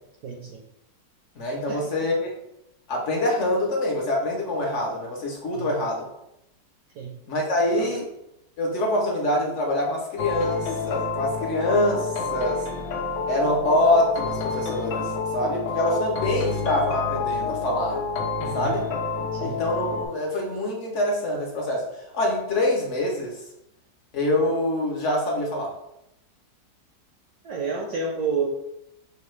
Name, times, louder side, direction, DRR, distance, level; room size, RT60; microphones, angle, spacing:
voice 1, 0.2-0.6 1.7-2.1 5.5-5.8 6.9-7.1 7.8-7.9 18.4-18.8 19.3-19.6 27.4-28.5, right 5 dB, 70° right, -1 dB, 1.0 m, -30 dB
voice 2, 1.4-2.3 2.9-6.0 7.3-8.1 8.6-12.6 13.3-18.0 18.5-18.9 19.4-21.8 22.1-23.4 24.1-25.7, left 1 dB, 60° left, -1 dB, 0.8 m, -25 dB
sound 1, 10.2-20.1, left 4 dB, 85° left, 0.6 m, -29 dB
5.5 x 2.2 x 3.1 m, 0.83 s
omnidirectional pair, 1.9 m